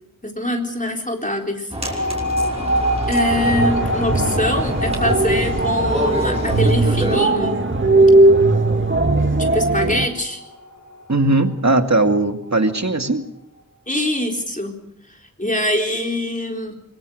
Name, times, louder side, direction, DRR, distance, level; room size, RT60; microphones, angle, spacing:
voice 1, 0.2-1.7 3.1-7.7 9.4-10.4 13.9-14.8 15.4-16.7, left 1 dB, 25° left, 2 dB, 4.0 m, -24 dB
sound 1, 1.7-7.2, right 1 dB, 20° right, 5.8 m, -27 dB
sound 2, 1.8-12.7, equal, 65° left, 4.4 m, -27 dB
sound 3, 3.3-10.1, right 2 dB, 35° right, 1.8 m, -18 dB
voice 2, 11.1-13.3, right 2 dB, 55° right, 6 dB, 2.3 m, -18 dB
24.5 x 23.0 x 6.6 m, 0.74 s
wide cardioid pair, 50°, 34 cm